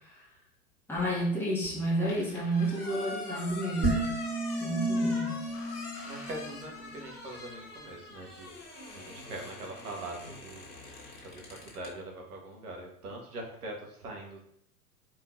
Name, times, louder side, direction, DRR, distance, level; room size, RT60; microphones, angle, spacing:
voice 1, 0.9-4.1 4.6-5.4, right 1 dB, 5° left, -8 dB, 1.6 m, -30 dB
sound 1, 1.6-11.9, left 2 dB, 75° left, 1.6 m, -44 dB
sound 2, 3.8-7.2, right 1 dB, 20° right, 1.7 m, -32 dB
voice 2, 6.1-8.6 8.9-10.7 11.2-14.4, right 2 dB, 70° right, 1 dB, 1.3 m, -42 dB
4.5 x 3.5 x 2.5 m, 0.70 s
figure-of-eight pair, 90°, 46 cm